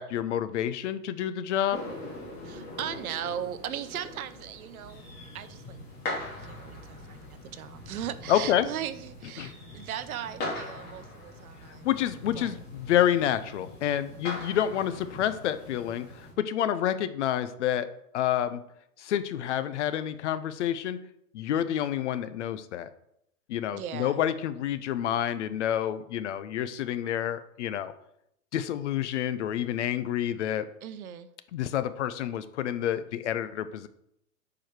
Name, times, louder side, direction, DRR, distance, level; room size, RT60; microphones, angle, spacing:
voice 1, 0.0-1.8 8.3-8.7 9.4-9.5 11.8-17.9 18.1-18.6 19.0-21.0 21.3-22.9 23.5-27.9 28.5-30.7 31.5-33.9, left 10 dB, 50° left, 12 dB, 0.7 m, -28 dB
sound 1, 1.7-16.3, left 2 dB, 20° left, 2.7 m, -41 dB
voice 2, 2.4-5.1 5.3-11.9 12.3-12.6 23.7-24.2 30.8-31.3, right 10 dB, 70° right, 13 dB, 0.9 m, -38 dB
9.0 x 4.9 x 4.7 m, 0.76 s
hypercardioid pair, 145°, 45 cm